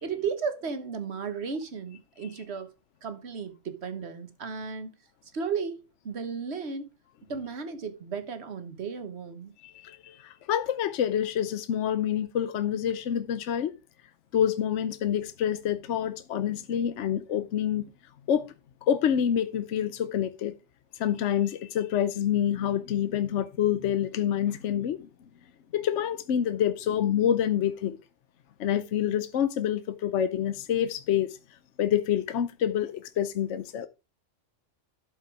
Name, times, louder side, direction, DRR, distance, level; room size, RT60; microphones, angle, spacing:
voice 1, 0.0-2.7 3.0-4.9 5.3-6.9 7.3-9.5, right 5 dB, 60° right, 1.5 m, -34 dB
voice 2, 9.6-13.7 14.3-17.8 18.3-18.5 18.8-20.5 21.0-25.1 25.7-28.0 28.6-31.4 31.8-33.9, left 9 dB, 70° left, 1.0 m, -27 dB
12.0 x 5.6 x 4.7 m
omnidirectional pair, 1.3 m